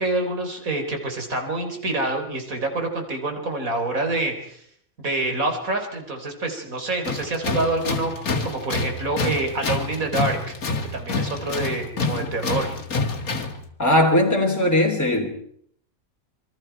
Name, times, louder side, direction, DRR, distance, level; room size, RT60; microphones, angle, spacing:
voice 1, 0.0-4.6 5.0-10.5 10.9-12.8, right 2 dB, 75° right, 4.1 m, -27 dB
Tools, 7.0-13.6, left 3 dB, 85° left, 2.3 m, -27 dB
voice 2, 13.8-15.3, left 1 dB, 10° left, 3.3 m, -19 dB
27.0 x 22.5 x 4.6 m
omnidirectional pair, 1.5 m